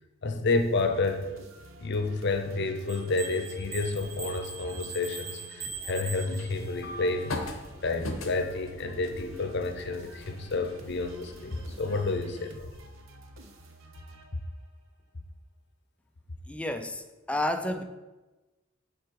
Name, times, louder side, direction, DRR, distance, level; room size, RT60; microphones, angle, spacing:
voice 1, 0.2-1.3 1.8-12.7, left 3 dB, 60° left, 6 dB, 0.8 m, -30 dB
sound 1, 0.5-14.8, right 1 dB, 80° right, 0.9 m, -51 dB
sound 2, 2.9-6.9, right 5 dB, 30° right, 2.5 m, -41 dB
sound 3, 5.9-12.2, left 2 dB, 85° left, 0.9 m, -42 dB
voice 2, 16.5-17.8, left 1 dB, 5° left, 7 dB, 0.4 m, -31 dB
7.6 x 4.6 x 4.7 m, 1.1 s
head